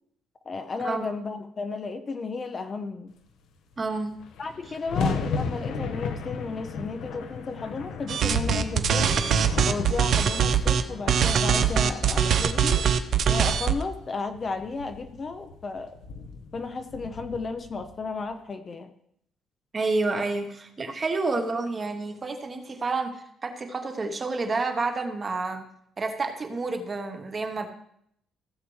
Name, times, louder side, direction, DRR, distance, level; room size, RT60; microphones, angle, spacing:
voice 1, 0.5-3.1 4.4-9.2 9.6-12.8 13.3-16.0 16.5-18.9, left 4 dB, 30° left, 8 dB, 0.5 m, -33 dB
sound 1, 3.7-3.8 4.0-18.4, left 5 dB, 80° left, 1.0 m, -35 dB
voice 2, 3.8-4.1 19.7-25.6 26.0-27.7, right 3 dB, 25° right, 6 dB, 1.0 m, -29 dB
sound 2, 8.1-10.8 11.1-13.8, right 8 dB, 50° right, 0.6 m, -22 dB
15.5 x 7.5 x 3.2 m, 0.71 s
cardioid pair, 165°, 0 cm